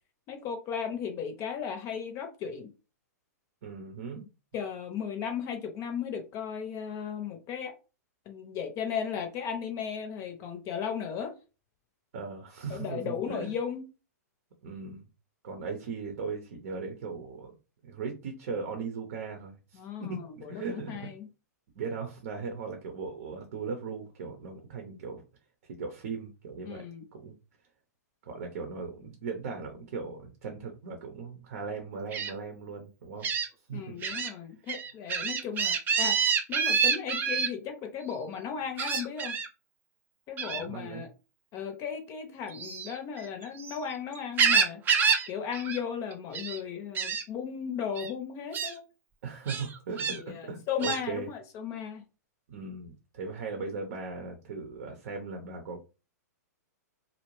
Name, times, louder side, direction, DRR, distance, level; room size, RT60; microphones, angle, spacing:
voice 1, 0.3-2.7 4.5-7.7 8.3-11.3 12.7-13.9 19.7-21.3 26.6-27.1 33.7-36.2 36.5-39.4 40.3-41.1 41.5-44.8 45.3-48.8 50.1-52.0, left 7 dB, 35° left, 0.6 m, -36 dB
voice 2, 3.6-4.3 12.1-13.5 14.6-15.1 15.4-17.6 17.8-21.1 21.8-25.2 25.8-26.8 27.1-27.3 28.2-33.3 33.7-33.9 40.5-41.0 49.2-51.3 52.5-55.9, right 4 dB, 60° right, 0.7 m, -38 dB
Gull seagull, 32.1-32.3 33.2-33.5 34.0-34.3 34.7-37.5 38.8-39.5 40.4-40.7 42.5-43.8 44.1-45.3 45.5-45.8 46.1-46.6 47.0-47.2 48.0-48.1 48.5-48.7 49.5-50.2 50.8-51.0, right 6 dB, 20° right, 0.4 m, -27 dB
2.6 x 2.0 x 3.1 m
hypercardioid pair, 120°, 9 cm